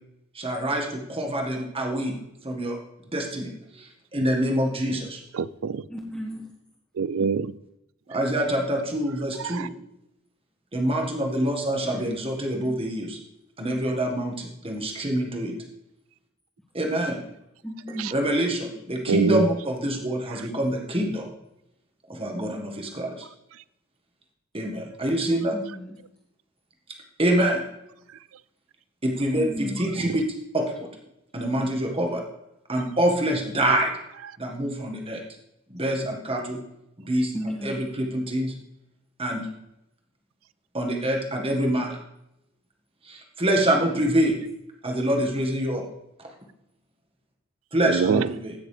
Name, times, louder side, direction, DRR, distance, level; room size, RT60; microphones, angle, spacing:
voice 1, 0.3-2.1 2.4-2.8 3.1-5.2 8.1-9.7 10.7-13.2 13.6-15.5 16.7-17.2 18.1-21.3 22.1-23.3 24.5-25.5 27.2-27.6 29.0-30.2 30.5-30.9 31.3-32.2 32.7-33.9 34.4-35.2 35.7-36.6 37.0-38.5 39.2-39.5 40.7-42.0 43.0-44.3 44.8-45.8 46.2-46.3 47.7-48.5, right 1 dB, 25° right, 2 dB, 1.7 m, -26 dB
voice 2, 5.3-5.8 7.0-7.5 9.4-9.7 18.0-18.1 19.1-19.5 30.1-30.2 47.9-48.3, right 6 dB, 70° right, 18 dB, 0.4 m, -24 dB
voice 3, 5.9-6.5 11.8-12.0 17.6-18.1 25.5-26.0 29.3-29.8 37.3-37.8, equal, 5° left, -7 dB, 1.7 m, -34 dB
16.5 x 6.5 x 3.3 m, 0.84 s
head